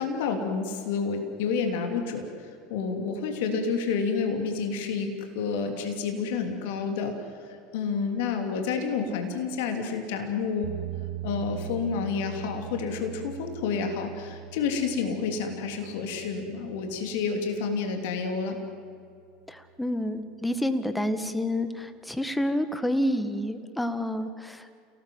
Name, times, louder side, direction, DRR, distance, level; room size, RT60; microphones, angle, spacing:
voice 1, 0.0-7.1 7.4-10.7 11.2-18.6 21.4-21.7, left 5 dB, 60° left, 4 dB, 3.0 m, -29 dB
sound 1, 10.6-18.7, right 10 dB, 55° right, 1.5 m, -41 dB
voice 2, 19.5-24.7, equal, 5° left, 10 dB, 1.7 m, -29 dB
29.5 x 18.0 x 7.9 m, 2.4 s
figure-of-eight pair, 75°, 0 cm